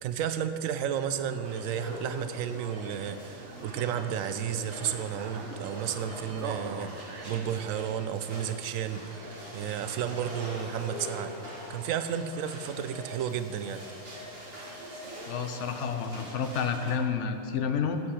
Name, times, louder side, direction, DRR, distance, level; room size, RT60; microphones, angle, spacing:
voice 1, 0.0-11.3 11.7-13.8, right 8 dB, 85° right, 10 dB, 1.0 m, -32 dB
metro in germania, 1.1-7.8, right 4 dB, 60° right, 1.1 m, -43 dB
sound 1, 1.4-16.9, equal, 45° right, 2.1 m, -44 dB
voice 2, 15.3-18.0, left 6 dB, 65° left, 7 dB, 1.0 m, -30 dB
13.0 x 8.2 x 4.3 m, 2.8 s
omnidirectional pair, 1.4 m